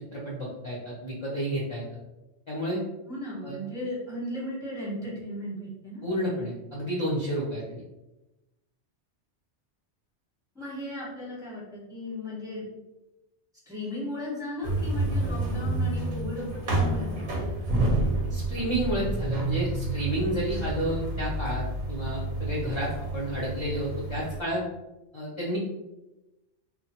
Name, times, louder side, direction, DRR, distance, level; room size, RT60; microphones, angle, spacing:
voice 1, 0.1-1.8 2.5-2.8 3.4-3.6 6.0-7.8 18.3-24.6 25.1-25.6, equal, 35° left, -5 dB, 0.5 m, -31 dB
voice 2, 3.1-6.0 10.5-12.7 13.7-17.4, left 1 dB, 5° right, -6 dB, 0.8 m, -36 dB
sound 1, 14.6-24.4, right 2 dB, 50° right, 0.6 m, -29 dB
3.1 x 2.1 x 2.8 m, 1.0 s
omnidirectional pair, 1.1 m